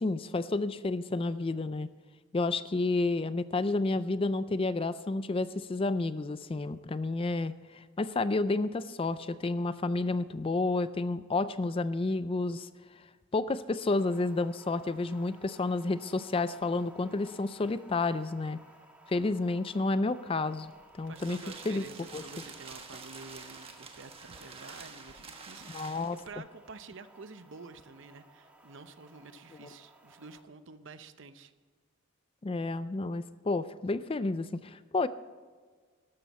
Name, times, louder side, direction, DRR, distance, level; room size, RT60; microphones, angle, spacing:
voice 1, 0.0-1.9 2.3-12.7 13.3-18.6 19.1-20.7 21.0-21.4 21.7-21.8 22.1-22.2 25.7-26.2 32.4-35.1, left 3 dB, 25° left, 14 dB, 0.4 m, -30 dB
sound 1, 13.8-30.4, right 1 dB, 5° right, 1.6 m, -58 dB
sound 2, 20.7-26.3, right 4 dB, 25° right, 1.3 m, -48 dB
voice 2, 21.1-31.5, right 4 dB, 60° right, 11 dB, 0.8 m, -49 dB
13.5 x 12.5 x 4.2 m, 1.5 s
head